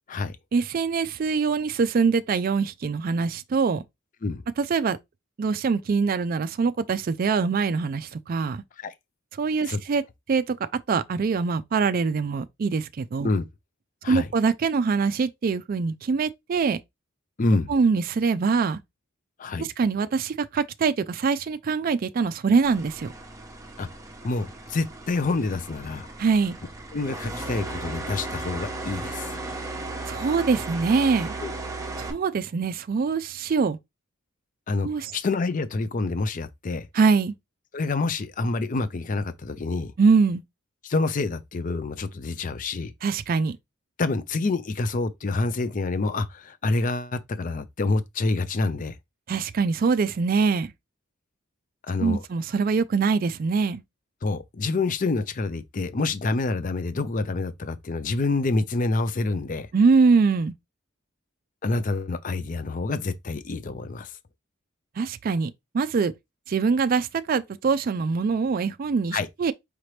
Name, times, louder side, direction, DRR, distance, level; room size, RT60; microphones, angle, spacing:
voice 1, 0.5-3.8 4.6-5.0 5.4-8.6 9.4-10.0 10.3-10.6 10.9-13.3 14.1-16.8 17.7-18.8 19.6-23.1 26.2-26.6 30.1-31.3 32.0-33.8 34.8-35.1 36.9-37.3 40.0-40.4 43.0-43.6 49.3-50.7 52.0-53.8 59.7-60.5 65.0-66.1 66.5-69.5, right 5 dB, 45° right, 0.3 m, -23 dB
voice 2, 17.4-17.7 19.4-19.7 23.8-23.9 24.2-26.1 26.9-29.3 31.4-31.5 34.7-36.9 37.7-39.9 40.8-42.9 44.0-49.0 51.8-52.2 54.2-59.7 61.6-64.1 69.1-69.3, left 3 dB, 40° left, 0.5 m, -27 dB
sound 1, 22.6-32.1, right 2 dB, 15° right, 0.8 m, -36 dB
4.9 x 2.9 x 3.2 m
head